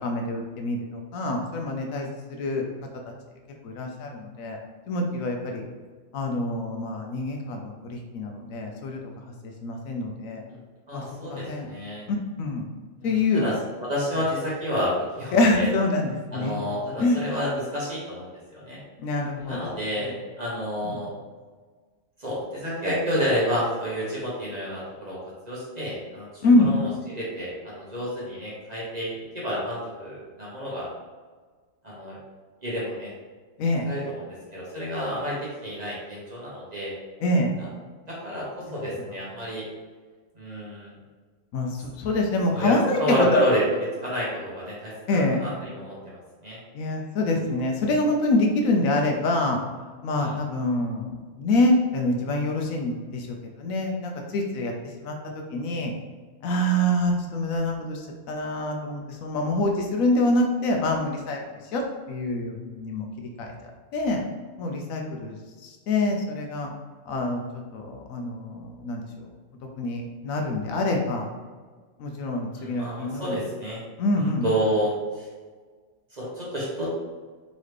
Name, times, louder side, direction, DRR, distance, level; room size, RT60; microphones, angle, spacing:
voice 1, 0.0-2.1 2.4-2.6 3.6-4.6 4.9-5.6 6.1-10.4 10.9-11.0 11.3-11.7 12.1-12.7 13.0-13.5 15.3-16.5 17.0-17.2 19.0-19.6 20.0-20.1 20.8-21.0 26.4-26.7 33.6-33.9 37.2-37.5 38.6-38.7 41.5-43.5 45.1-45.4 46.7-49.6 50.0-51.1 51.4-55.2 55.5-55.9 56.4-61.4 61.7-61.8 62.1-63.1 63.4-64.2 64.6-65.4 65.6-66.7 67.1-67.4 67.7-69.3 69.8-71.3 72.0-73.4 74.0-74.5, left 2 dB, 75° left, 2 dB, 1.0 m, -25 dB
voice 2, 10.9-12.0 13.3-13.5 13.8-15.7 16.3-18.8 19.4-21.1 22.2-25.2 25.4-26.8 27.1-30.9 31.8-32.2 32.6-33.1 33.9-36.9 37.6-37.7 38.1-39.7 40.3-40.9 42.5-43.6 44.0-46.6 50.2-50.3 72.5-73.8 74.2-75.3 76.1-76.9, equal, 35° right, -7 dB, 0.9 m, -30 dB
3.9 x 3.1 x 3.2 m, 1.4 s
omnidirectional pair, 1.5 m